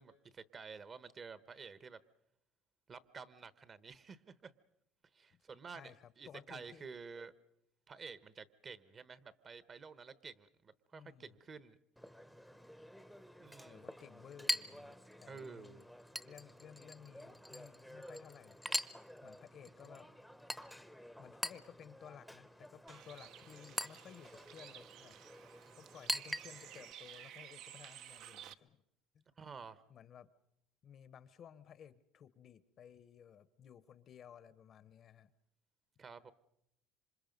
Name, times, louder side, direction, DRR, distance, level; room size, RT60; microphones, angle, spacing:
voice 1, 0.0-2.0 2.9-4.5 5.1-7.3 7.9-11.8 13.4-13.8 15.2-15.8 29.4-29.8 36.0-36.3, right 5 dB, 30° right, 15 dB, 1.0 m, -51 dB
voice 2, 5.7-6.9 10.9-11.4 13.7-15.9 16.2-18.7 19.2-20.1 21.2-25.1 25.7-28.8 29.1-29.3 29.9-30.3 30.8-35.3, left 8 dB, 45° left, 16 dB, 0.9 m, -56 dB
Chink clink, 12.0-26.9, equal, ahead, 0.8 m, -45 dB
Bird, 22.9-28.5, right 10 dB, 60° right, 0.8 m, -54 dB
27.0 x 25.0 x 5.3 m, 0.77 s
cardioid pair, 120°, 0 cm